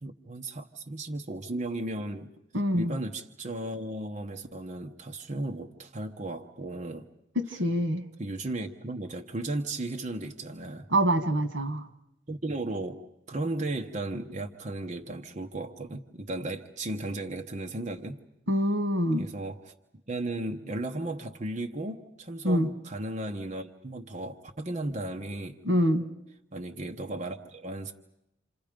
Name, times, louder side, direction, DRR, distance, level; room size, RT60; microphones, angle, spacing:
voice 1, 0.0-2.3 2.7-7.1 8.2-10.9 12.3-13.0 13.3-18.2 19.2-19.7 20.1-25.6 26.5-27.9, right 2 dB, 40° right, 3 dB, 1.1 m, -35 dB
voice 2, 2.5-3.0 7.4-8.1 10.9-11.9 18.5-19.3 22.4-22.7 25.6-26.1, equal, 90° right, 7 dB, 1.9 m, -25 dB
28.0 x 27.5 x 5.2 m, 0.83 s
head